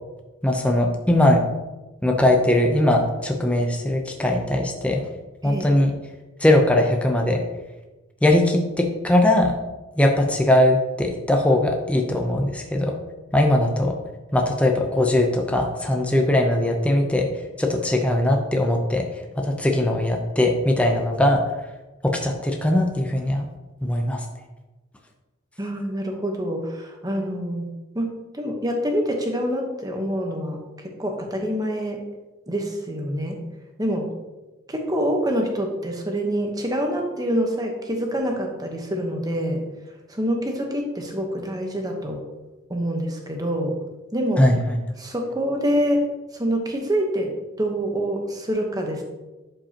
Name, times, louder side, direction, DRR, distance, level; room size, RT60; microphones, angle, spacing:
voice 1, 0.4-1.4 2.0-5.0 5.4-5.9 6.4-7.4 8.2-9.5 10.0-12.9 13.3-13.9 14.3-17.3 17.6-19.0 19.4-21.4 22.0-23.5 23.8-24.2 44.4-44.8, left 1 dB, 5° left, 1 dB, 0.7 m, -20 dB
voice 2, 5.4-5.8 25.6-28.1 28.3-30.6 30.8-32.1 32.5-33.4 33.8-34.1 34.7-39.6 40.1-42.2 42.7-43.8 44.1-44.4 45.0-49.0, equal, 20° right, 2 dB, 1.1 m, -26 dB
11.5 x 5.3 x 2.9 m, 1.1 s
head